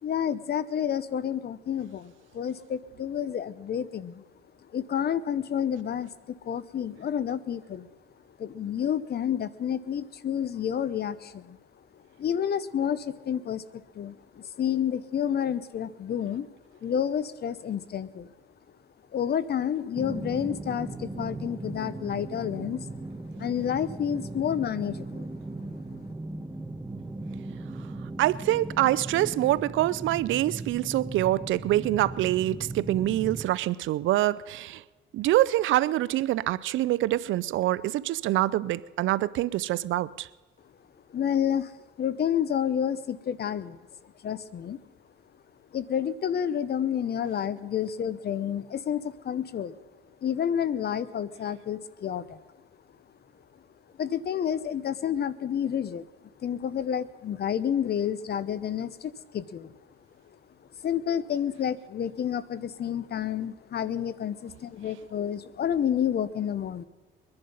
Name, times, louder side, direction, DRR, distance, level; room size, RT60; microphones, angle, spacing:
voice 1, 0.0-4.2 4.7-7.9 8.4-11.6 12.2-16.5 16.8-18.3 19.1-22.9 23.4-25.3 41.1-44.8 45.7-49.8 50.2-52.4 54.0-56.1 56.4-59.7 60.8-66.8, left 9 dB, 55° left, 0.9 m, -30 dB
sound 1, 19.9-33.4, right 2 dB, 15° right, 1.1 m, -38 dB
voice 2, 28.2-34.8 35.1-40.3, right 15 dB, 80° right, 0.5 m, -25 dB
22.0 x 10.5 x 5.5 m
cardioid pair, 90°, 20 cm